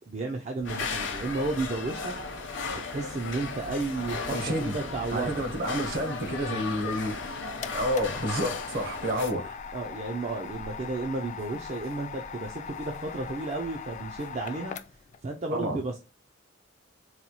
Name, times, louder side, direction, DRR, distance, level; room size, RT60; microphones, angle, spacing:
voice 1, 0.1-2.1 2.7-5.4 9.7-14.8 15.2-16.0, right 3 dB, 35° right, 0.4 m, -33 dB
sound 1, 0.6-9.3, left 4 dB, 65° left, 0.7 m, -36 dB
sound 2, 0.6-14.4, equal, 80° right, 0.9 m, -48 dB
voice 2, 4.3-4.7 5.1-7.3 7.7-9.6 15.5-15.8, equal, 55° right, 1.0 m, -30 dB
sound 3, 7.6-15.2, left 7 dB, 40° left, 0.3 m, -41 dB
4.1 x 2.3 x 2.9 m
head